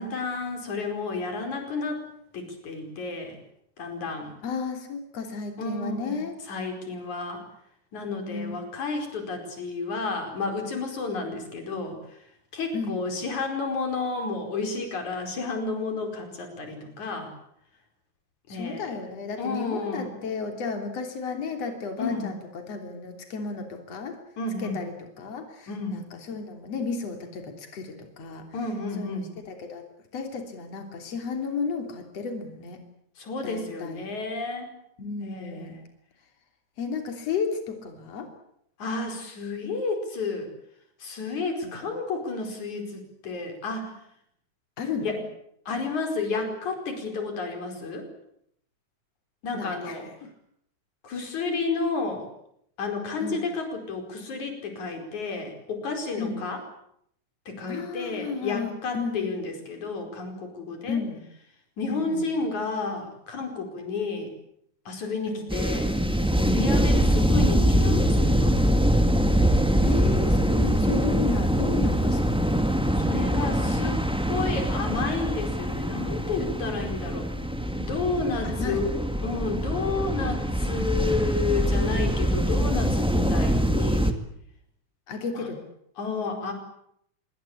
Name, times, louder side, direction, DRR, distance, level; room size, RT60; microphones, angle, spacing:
voice 1, 0.0-2.0 2.3-3.4 3.8-4.4 5.6-7.4 7.9-12.0 12.5-17.3 18.5-18.9 19.4-20.1 22.0-22.3 24.4-24.8 25.7-26.0 28.5-29.3 33.2-34.7 35.2-35.7 38.8-40.5 41.0-43.9 45.0-45.2 45.7-48.1 49.4-50.1 51.0-52.3 52.8-56.6 57.5-61.0 61.8-64.3 64.9-65.9 66.3-68.5 73.0-74.0 74.3-77.3 77.7-78.9 79.2-84.2 85.4-85.5 86.0-86.5, left 3 dB, 80° left, 4 dB, 6.3 m, -31 dB
voice 2, 4.4-6.4 8.2-8.6 11.3-11.4 12.7-13.1 18.5-22.4 22.7-24.2 24.6-28.5 29.0-29.8 30.1-32.8 33.4-34.0 35.0-35.8 36.8-38.3 41.6-41.9 44.8-45.2 49.5-50.3 53.2-53.4 56.2-56.5 57.7-59.5 60.9-61.2 61.9-62.3 65.3-65.4 69.8-72.6 78.4-78.8 85.1-85.6, left 5 dB, 60° left, 4 dB, 4.3 m, -33 dB
sound 1, 65.5-84.1, equal, 5° right, 1.1 m, -23 dB
26.0 x 22.5 x 8.5 m, 0.73 s
omnidirectional pair, 3.3 m